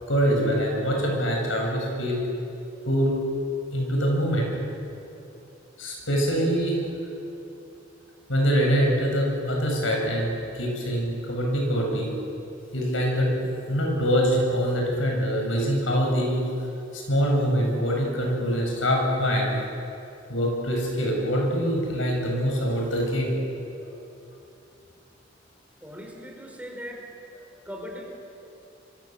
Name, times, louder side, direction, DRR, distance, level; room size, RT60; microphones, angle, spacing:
voice 1, 0.0-2.3 2.9-3.2 3.7-4.5 5.8-6.8 8.3-12.1 12.7-13.3 13.7-16.5 16.9-19.6 20.3-23.4, equal, 85° left, -1 dB, 7.7 m, -24 dB
voice 2, 25.8-27.0 27.7-28.1, equal, 10° right, 0 dB, 4.6 m, -39 dB
26.0 x 24.5 x 7.9 m, 2.7 s
head